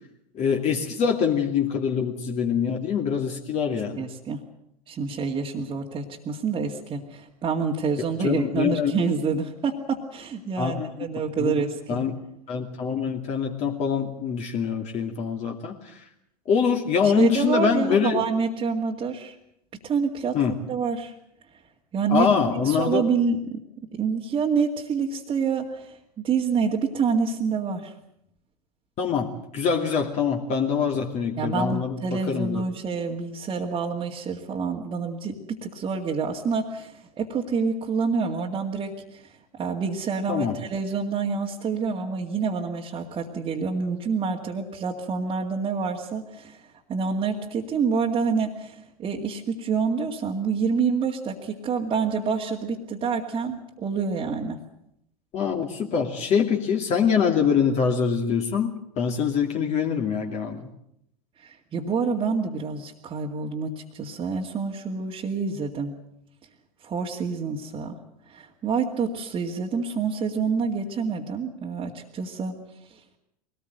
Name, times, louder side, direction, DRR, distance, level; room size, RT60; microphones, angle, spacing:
voice 1, 0.3-4.0 8.2-8.9 10.6-10.9 11.4-11.6 11.9-12.1 12.5-15.9 16.5-18.2 20.3-20.5 22.1-23.0 29.0-32.6 40.3-40.6 55.3-60.7, left 6 dB, 35° left, 2 dB, 2.6 m, -24 dB
voice 2, 4.0-4.4 4.9-12.0 17.0-19.4 19.8-20.4 20.7-21.1 21.9-22.3 22.6-23.6 23.9-27.9 31.4-39.2 39.5-46.6 46.9-54.6 61.4-65.9 66.8-68.0 68.3-72.5 72.9-73.0, right 5 dB, 25° right, -3 dB, 2.2 m, -27 dB
23.0 x 19.0 x 7.9 m, 0.78 s
figure-of-eight pair, 90°, 21 cm